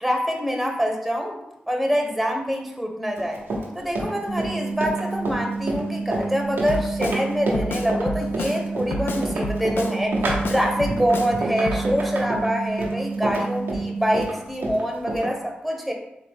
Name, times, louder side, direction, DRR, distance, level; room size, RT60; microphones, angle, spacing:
voice 1, 0.0-1.4 1.7-3.4 3.7-15.9, equal, ahead, 1 dB, 0.9 m, -25 dB
Run, 3.2-15.3, right 2 dB, 90° right, 0.8 m, -29 dB
sound 1, 4.3-14.3, right 4 dB, 40° right, 0.5 m, -30 dB
Drum kit, 6.7-7.2 7.5-8.6 8.9-10.0 10.3-11.3 11.7-11.8, left 2 dB, 75° left, 0.4 m, -29 dB
3.7 x 3.2 x 3.5 m, 0.87 s
cardioid pair, 40°, 4 cm